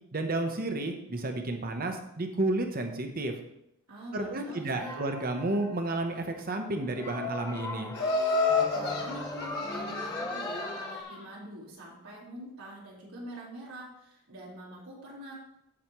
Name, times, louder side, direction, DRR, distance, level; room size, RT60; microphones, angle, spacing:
voice 1, 0.1-3.4 4.1-7.9, right 2 dB, 45° right, 5 dB, 1.0 m, -31 dB
voice 2, 3.9-5.0 8.7-15.3, right 1 dB, 90° right, -6 dB, 3.3 m, -45 dB
sound 1, 4.8-6.1 6.7-11.0, left 2 dB, 15° left, 0.7 m, -39 dB
Laughter, 7.9-11.2, left 4 dB, 50° left, 2.0 m, -30 dB
14.5 x 5.0 x 3.1 m, 0.81 s
head